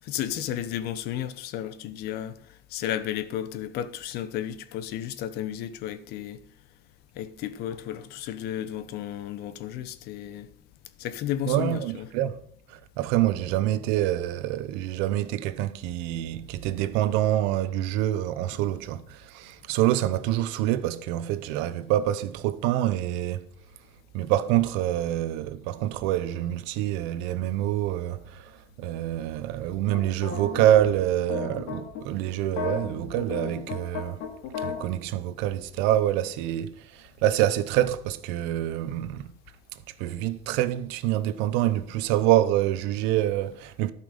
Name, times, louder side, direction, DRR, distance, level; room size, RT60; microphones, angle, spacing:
voice 1, 0.0-6.4 7.1-10.5 11.0-12.1, left 11 dB, 60° left, 0.8 m, -33 dB
voice 2, 11.5-12.4 12.7-23.4 24.1-34.2 34.6-39.3 40.0-43.9, right 13 dB, 75° right, 0.8 m, -26 dB
sound 1, 29.9-32.0 32.5-34.8, left 6 dB, 80° left, 2.3 m, -34 dB
12.5 x 5.8 x 5.1 m
cardioid pair, 140°, 18 cm